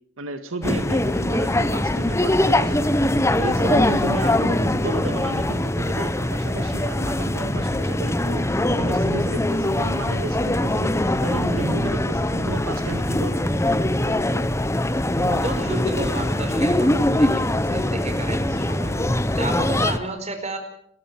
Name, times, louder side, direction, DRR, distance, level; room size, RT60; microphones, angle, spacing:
voice 1, 0.2-2.9 3.4-10.9 11.2-13.4, right 2 dB, 85° right, 8 dB, 1.9 m, -33 dB
sound 1, 0.6-20.0, left 1 dB, 15° left, 0.9 m, -22 dB
voice 2, 15.2-20.6, right 2 dB, 35° right, 6 dB, 4.7 m, -32 dB
29.5 x 14.5 x 7.3 m, 0.68 s
head